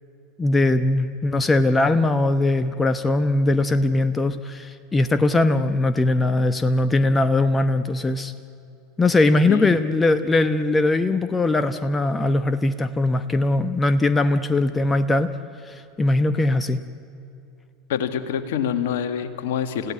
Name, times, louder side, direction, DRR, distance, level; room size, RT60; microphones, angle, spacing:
voice 1, 0.4-8.3 9.0-15.3 15.6-16.8, left 2 dB, 15° left, 11 dB, 0.9 m, -20 dB
voice 2, 17.9-19.9, left 8 dB, 65° left, 10 dB, 1.6 m, -26 dB
29.5 x 16.0 x 9.5 m, 2.6 s
figure-of-eight pair, 80°, 0 cm